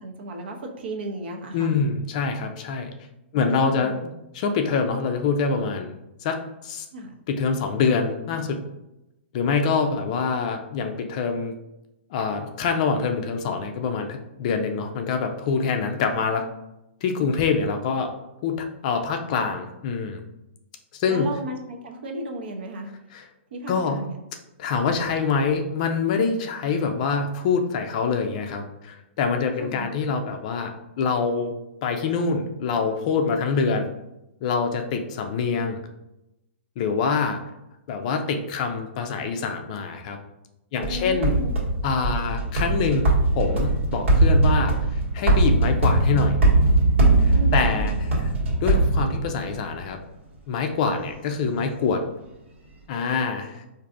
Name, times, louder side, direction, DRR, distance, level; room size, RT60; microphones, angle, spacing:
voice 1, 0.0-1.8 3.3-3.9 6.9-7.1 16.1-16.3 21.1-22.9 23.5-24.1 29.6-29.9 40.7-41.6 47.3-48.0, right 1 dB, 55° right, 3 dB, 0.7 m, -34 dB
voice 2, 1.5-2.9 3.3-5.9 6.2-6.4 6.6-6.9 7.3-8.6 9.3-11.5 12.1-16.4 17.0-18.1 18.4-20.2 20.9-21.3 23.1-23.3 23.7-24.0 24.6-30.7 31.0-31.5 31.8-33.9 34.4-35.8 36.8-37.4 37.9-40.2 40.7-41.4 41.8-43.1 43.3-46.4 47.2-48.3 48.6-50.0 50.5-52.0 52.9-53.6, left 5 dB, 35° left, 5 dB, 0.4 m, -25 dB
sound 1, 40.8-49.6, right 2 dB, 75° right, 1.4 m, -20 dB
4.6 x 2.6 x 2.5 m, 0.89 s
hypercardioid pair, 160°, 7 cm